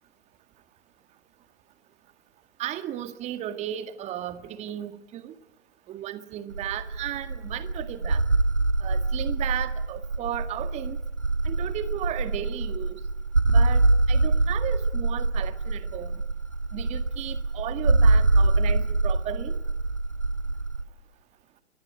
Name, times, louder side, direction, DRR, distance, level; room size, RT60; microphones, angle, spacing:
voice 1, 2.6-5.3 5.9-8.2 8.8-11.0 11.4-13.0 13.5-16.2 16.7-19.6, right 11 dB, 20° right, 10 dB, 2.0 m, -35 dB
sound 1, 6.5-20.8, right 2 dB, 85° right, 1.7 m, -24 dB
25.0 x 22.5 x 9.1 m, 0.87 s
figure-of-eight pair, 120°, 35 cm